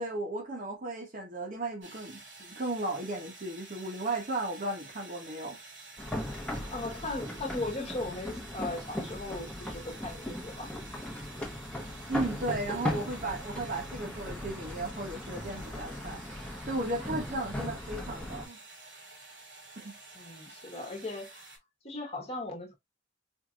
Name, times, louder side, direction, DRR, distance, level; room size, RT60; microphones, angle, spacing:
voice 1, 0.0-5.6 12.1-18.6 19.8-20.0, right 2 dB, 45° right, 1.0 m, -35 dB
sound 1, 1.8-21.6, right 3 dB, 85° right, 2.5 m, -50 dB
sound 2, 6.0-18.5, left 1 dB, 5° left, 0.8 m, -38 dB
voice 2, 6.7-10.8 20.1-21.4 21.8-22.8, left 2 dB, 35° left, 1.1 m, -38 dB
4.6 x 2.8 x 2.4 m
head